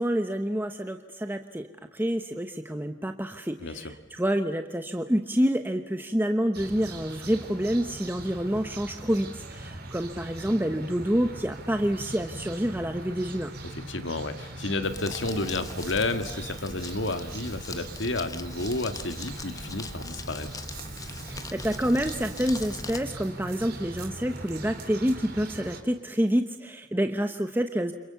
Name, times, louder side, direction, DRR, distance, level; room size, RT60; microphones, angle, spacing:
voice 1, 0.0-13.5 21.2-27.9, equal, 10° right, 7 dB, 1.0 m, -28 dB
voice 2, 3.6-3.9 13.7-20.6, left 2 dB, 65° left, 8 dB, 2.1 m, -31 dB
sound 1, 6.5-25.8, right 2 dB, 50° right, 3.8 m, -41 dB
Crumpling crinkling, 14.8-23.0, left 3 dB, 20° left, 1.4 m, -41 dB
30.0 x 27.5 x 7.0 m, 1.0 s
head